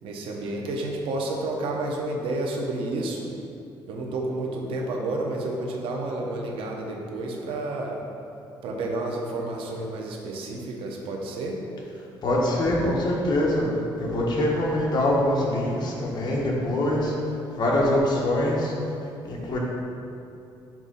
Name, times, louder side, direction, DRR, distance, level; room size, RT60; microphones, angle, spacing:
voice 1, 0.0-3.3 3.9-8.0 8.6-11.6, right 2 dB, 85° right, 0 dB, 0.9 m, -30 dB
voice 2, 12.2-13.7 14.0-17.1 17.5-18.7 19.3-19.6, left 1 dB, 50° left, -3 dB, 1.2 m, -24 dB
6.0 x 3.6 x 5.4 m, 2.7 s
cardioid pair, 135°, 9 cm